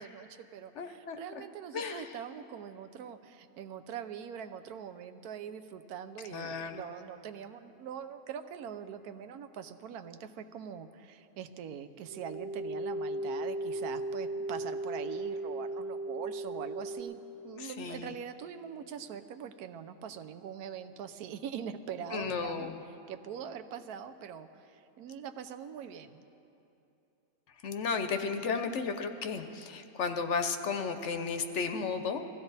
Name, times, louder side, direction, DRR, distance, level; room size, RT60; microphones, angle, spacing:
voice 1, 0.0-17.2 17.4-26.2, right 8 dB, 85° right, 9 dB, 1.2 m, -43 dB
voice 2, 0.8-1.2 1.7-2.0 6.3-6.9 17.6-18.1 22.1-22.8 27.6-32.2, left 5 dB, 60° left, 8 dB, 0.9 m, -34 dB
sound 1, 12.1-17.0, right 1 dB, 60° right, 1.2 m, -36 dB
20.5 x 14.5 x 4.0 m, 2.9 s
omnidirectional pair, 1.5 m